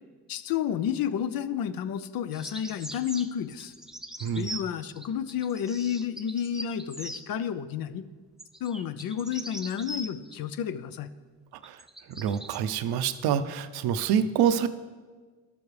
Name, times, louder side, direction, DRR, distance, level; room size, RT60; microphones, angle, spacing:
voice 1, 0.3-3.7 4.4-8.0 8.6-11.1, left 8 dB, 65° left, 14 dB, 0.5 m, -31 dB
sound 1, 2.3-7.2 8.4-10.4 11.6-12.6, right 1 dB, ahead, 0.5 m, -41 dB
voice 2, 12.2-14.7, right 8 dB, 80° right, 12 dB, 0.6 m, -26 dB
11.0 x 7.0 x 3.2 m, 1.4 s
supercardioid pair, 65°, 37 cm